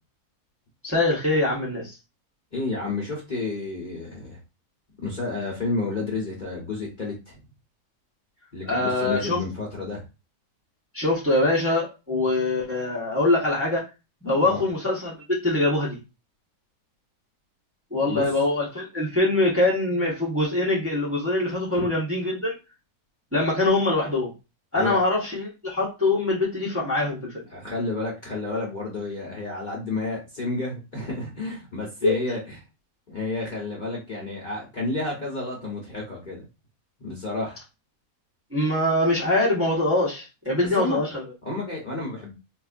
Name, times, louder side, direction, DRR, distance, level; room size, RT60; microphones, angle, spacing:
voice 1, 0.8-1.9 8.7-9.4 10.9-13.8 14.2-16.0 17.9-22.6 23.3-24.3 24.7-27.5 32.0-32.4 38.5-41.2, left 2 dB, 10° right, 1.0 m, -23 dB
voice 2, 2.5-4.4 5.0-7.4 8.5-10.0 14.4-14.6 18.1-18.3 21.7-21.9 24.7-25.0 27.5-32.6 33.1-36.5 37.0-37.6 40.8-41.0 41.4-42.3, left 2 dB, 35° left, 1.0 m, -30 dB
4.4 x 2.7 x 2.5 m
omnidirectional pair, 1.6 m